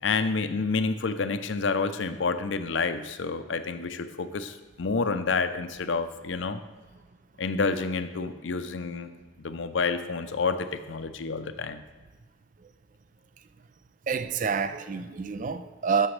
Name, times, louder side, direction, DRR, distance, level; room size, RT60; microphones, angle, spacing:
voice 1, 0.0-6.6 7.4-9.1 9.4-11.8, left 4 dB, 75° left, 0.6 m, -29 dB
voice 2, 14.1-16.1, right 5 dB, 40° right, 0.4 m, -28 dB
13.0 x 6.2 x 3.3 m
head